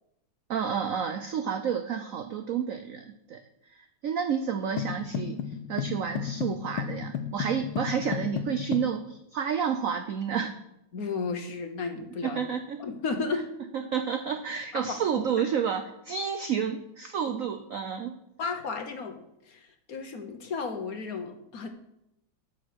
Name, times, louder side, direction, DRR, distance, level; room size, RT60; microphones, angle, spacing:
voice 1, 0.5-3.4 3.7-10.6 12.2-12.8 13.7-18.1, right 7 dB, 75° right, 8 dB, 0.7 m, -30 dB
sound 1, 4.8-8.9, left 8 dB, 90° left, 1.6 m, -33 dB
voice 2, 10.9-12.4 12.8-13.5 14.7-15.0 18.4-21.7, left 4 dB, 55° left, 7 dB, 1.2 m, -33 dB
9.4 x 6.5 x 6.3 m, 0.83 s
omnidirectional pair, 2.2 m